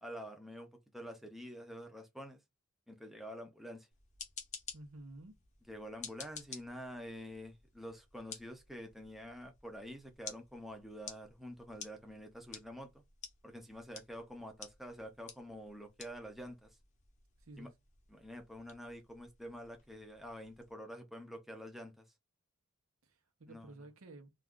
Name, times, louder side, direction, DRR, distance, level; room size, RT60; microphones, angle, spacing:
voice 1, 0.0-2.4 2.9-3.9 5.7-13.0 13.4-16.8 17.6-17.7 18.1-22.0 23.5-23.8, equal, ahead, 0.4 m, -48 dB
sound 1, 3.9-20.7, left 6 dB, 35° left, 0.7 m, -53 dB
voice 2, 4.7-5.4 17.4-17.7 23.0-24.3, right 2 dB, 75° right, 0.7 m, -52 dB
2.3 x 2.3 x 3.5 m
head